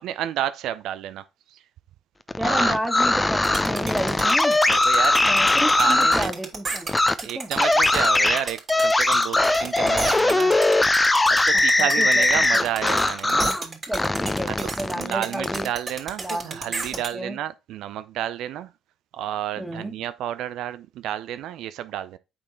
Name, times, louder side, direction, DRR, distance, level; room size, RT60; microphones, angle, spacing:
voice 1, 0.0-1.6 2.4-2.8 4.7-5.4 5.7-6.3 7.2-11.0 11.3-13.5 14.4-14.6 14.9-18.7 19.1-22.2, right 11 dB, 65° right, 0.5 m, -31 dB
sound 1, 2.3-6.3 6.9-7.1 7.6-13.6 13.9-15.6, left 2 dB, 15° left, 0.7 m, -20 dB
voice 2, 2.4-4.6 5.2-6.9 7.3-7.5 11.8-12.7 13.3-15.7 16.2-17.4 19.6-20.0, right 1 dB, 5° right, 2.0 m, -31 dB
sound 2, 3.4-17.1, right 4 dB, 45° right, 3.3 m, -33 dB
8.6 x 4.5 x 4.4 m
hypercardioid pair, 50°, 0 cm